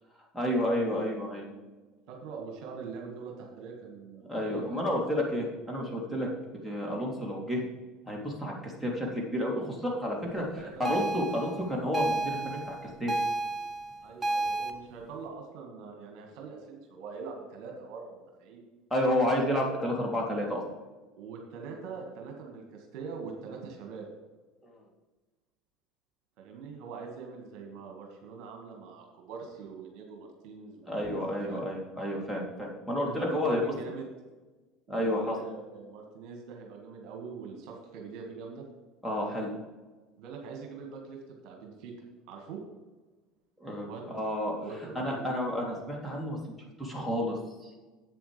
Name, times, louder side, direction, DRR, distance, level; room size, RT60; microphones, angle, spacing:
voice 1, 0.3-1.5 4.3-6.3 6.6-7.6 8.1-10.4 10.8-12.7 13.0-13.1 18.9-20.6 30.9-33.6 34.9-35.4 39.0-39.5 43.6-44.5 44.9-47.7, left 1 dB, ahead, -3 dB, 3.2 m, -30 dB
voice 2, 2.1-4.9 10.2-10.9 11.3-11.5 14.0-18.6 21.2-24.1 26.4-31.7 33.1-34.0 34.9-38.6 40.2-41.9 42.3-42.6 43.8-44.0 44.6-45.3, right 5 dB, 60° right, 2 dB, 1.8 m, -43 dB
sound 1, 10.8-14.7, right 2 dB, 25° right, 1.1 m, -31 dB
11.5 x 8.3 x 3.4 m, 1.2 s
figure-of-eight pair, 70°, 0 cm